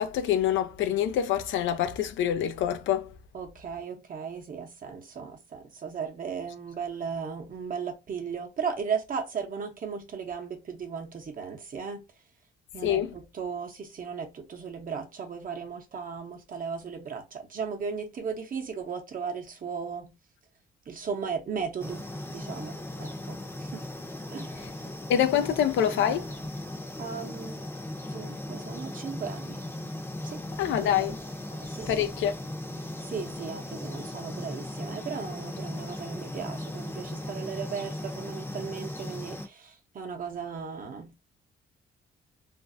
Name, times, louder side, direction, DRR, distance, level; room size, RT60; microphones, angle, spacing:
voice 1, 0.0-3.1 12.8-13.1 25.1-26.3 30.6-31.2 31.9-32.3, left 10 dB, 75° left, 0.4 m, -26 dB
voice 2, 3.3-12.0 12.7-20.1 20.9-23.9 24.3-24.5 27.0-27.7 28.1-29.6 30.2-30.4 30.8-30.9 31.5-32.1 33.0-41.2, right 6 dB, 45° right, 0.8 m, -36 dB
sound 1, 21.8-39.5, left 1 dB, 10° left, 0.7 m, -38 dB
2.5 x 2.0 x 2.5 m
cardioid pair, 90°, 20 cm